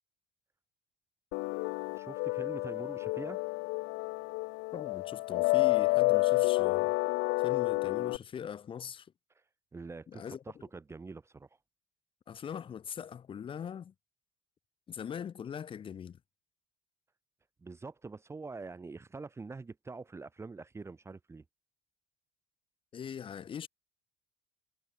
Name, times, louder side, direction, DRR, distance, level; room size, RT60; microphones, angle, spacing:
sound 1, 1.3-8.2, left 25 dB, 75° left, 0.6 m, -30 dB
voice 1, 2.0-3.4 9.7-11.5 17.6-21.4, right 4 dB, 15° right, 1.9 m, -45 dB
voice 2, 4.7-6.9 7.4-9.1 10.1-10.4 12.3-13.9 14.9-16.2 22.9-23.7, left 8 dB, 25° left, 1.1 m, -41 dB
cardioid pair, 170°, 20 cm